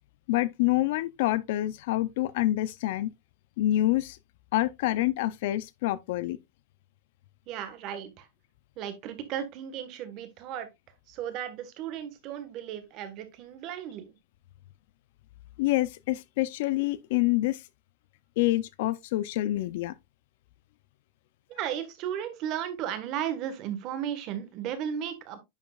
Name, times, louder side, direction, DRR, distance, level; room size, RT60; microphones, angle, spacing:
voice 1, 0.3-3.1 3.6-4.2 4.5-6.4 15.6-17.6 18.4-19.9, left 16 dB, 65° left, 0.5 m, -27 dB
voice 2, 7.5-8.3 8.8-10.7 11.1-14.1 21.5-25.4, right 9 dB, 40° right, 1.4 m, -35 dB
10.0 x 5.2 x 2.4 m
supercardioid pair, 150°, 0 cm